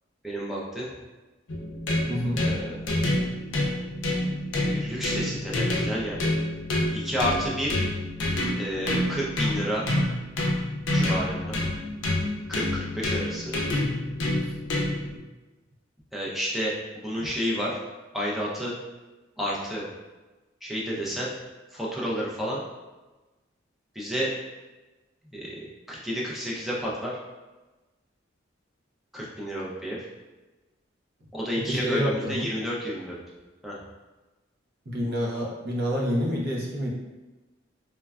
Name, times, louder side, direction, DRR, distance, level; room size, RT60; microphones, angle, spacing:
voice 1, 0.2-0.9 2.4-2.7 4.6-6.4 6.9-7.8 8.6-9.8 10.9-11.6 12.5-13.6 16.1-17.8 18.1-18.8 19.4-19.9 20.6-21.3 21.7-22.6 23.9-24.3 25.3-25.6 25.9-27.1 29.1-30.1 31.3-33.1 33.6-33.8, equal, ahead, -5 dB, 0.4 m, -30 dB
sound 1, 1.5-15.2, left 1 dB, 70° left, 0.5 m, -28 dB
voice 2, 2.1-2.4 31.7-32.5 34.9-36.9, equal, 50° right, -3 dB, 0.6 m, -27 dB
3.1 x 2.2 x 2.3 m, 1.2 s
head